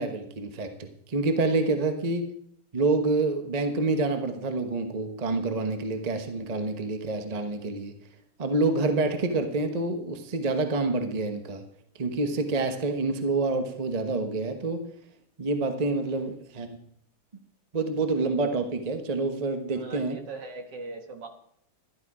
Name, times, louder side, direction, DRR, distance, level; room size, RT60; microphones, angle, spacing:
voice 1, 0.0-2.2 2.7-7.9 8.4-11.6 12.0-14.8 15.4-16.8 17.7-20.2, right 3 dB, 30° right, 6 dB, 0.8 m, -27 dB
voice 2, 19.7-21.3, right 3 dB, 60° right, 5 dB, 2.0 m, -40 dB
12.0 x 12.0 x 4.8 m, 0.68 s
omnidirectional pair, 2.3 m